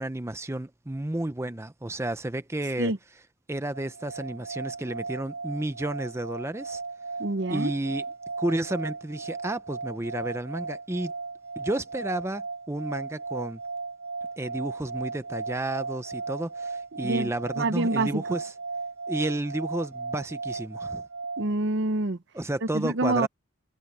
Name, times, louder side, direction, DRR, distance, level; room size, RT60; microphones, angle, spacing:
voice 1, 0.0-2.9 3.5-6.8 7.5-8.1 8.4-11.1 11.6-13.6 14.4-18.5 19.1-21.0 22.3-23.3, right 1 dB, 15° right, 0.7 m, -31 dB
sound 1, 3.7-21.5, right 4 dB, 85° right, 5.3 m, -36 dB
voice 2, 7.2-7.7 17.0-17.3 17.6-18.2 21.4-22.2 22.7-23.3, right 2 dB, 60° right, 0.9 m, -26 dB
head